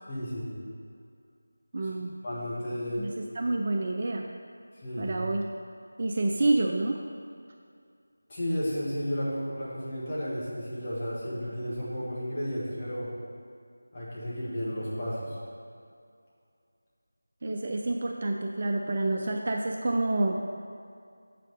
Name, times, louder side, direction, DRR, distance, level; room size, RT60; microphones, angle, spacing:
voice 1, 0.1-0.6 2.2-3.1 4.8-5.2 8.3-13.1 13.9-15.4, equal, 25° left, -9 dB, 1.9 m, -33 dB
voice 2, 1.7-2.1 3.0-4.3 5.0-5.5 6.0-7.0 17.4-20.3, right 2 dB, 35° right, 2 dB, 0.4 m, -28 dB
7.2 x 5.8 x 4.9 m, 2.3 s
figure-of-eight pair, 165°, 0 cm